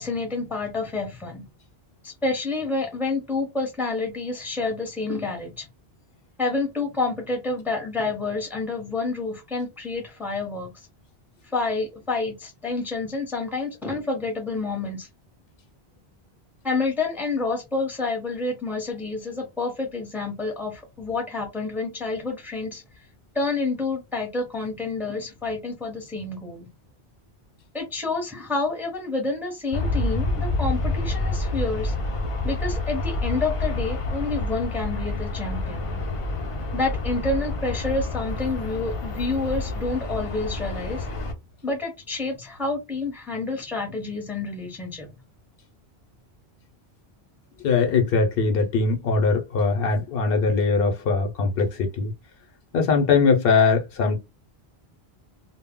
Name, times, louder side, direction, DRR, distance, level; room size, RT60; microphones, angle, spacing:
voice 1, 0.0-1.4 2.0-5.7 6.4-10.7 11.4-15.1 16.6-22.8 23.3-26.7 27.7-31.9 32.4-35.9 36.7-41.1 41.6-45.1, left 3 dB, ahead, 0.6 m, -28 dB
Aircraft, 29.7-41.3, left 2 dB, 50° left, 0.4 m, -28 dB
voice 2, 47.6-52.1 52.7-54.2, left 4 dB, 70° left, 0.8 m, -21 dB
2.0 x 2.0 x 3.5 m
omnidirectional pair, 1.1 m